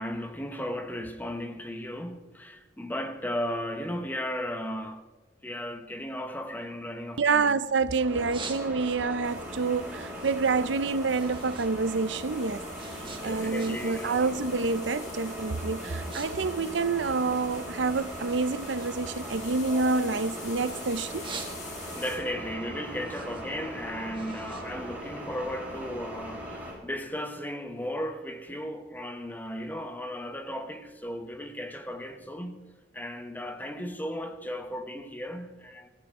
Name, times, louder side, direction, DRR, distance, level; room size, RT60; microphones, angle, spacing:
voice 1, 0.0-5.1 5.4-7.6 13.0-14.3 21.9-32.6 32.9-35.9, equal, 10° left, 1.0 m, -35 dB
sound 1, 7.0-7.7 8.0-9.1 9.5-11.7 12.0-14.0 14.3-14.7 15.3-15.4 15.8-16.3 16.5-17.8 18.3-20.6 21.0-22.0 22.4-25.6, right 5 dB, 30° right, 1.7 m, -45 dB
voice 2, 7.2-21.3, right 4 dB, 80° right, 0.7 m, -28 dB
sound 2, 7.9-26.7, equal, 10° right, 6.2 m, -39 dB
sound 3, 9.2-22.2, left 4 dB, 40° left, 4.3 m, -47 dB
21.5 x 15.0 x 3.7 m
head